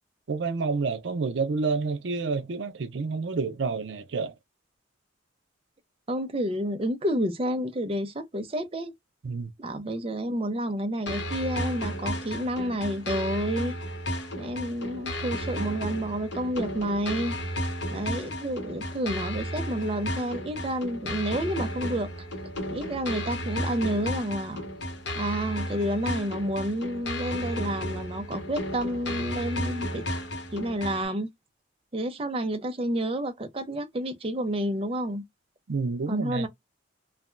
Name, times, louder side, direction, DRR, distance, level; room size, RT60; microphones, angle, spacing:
voice 1, 0.3-4.3 9.2-9.5 35.7-36.5, right 4 dB, 70° right, 0.5 m, -29 dB
voice 2, 6.1-8.9 9.6-13.7 14.4-17.4 17.9-22.1 22.7-24.7 25.1-30.2 30.5-31.3 31.9-35.2 36.1-36.5, right 1 dB, 30° right, 0.6 m, -30 dB
sound 1, 11.1-31.1, equal, 70° left, 1.0 m, -33 dB
3.3 x 2.2 x 2.4 m
head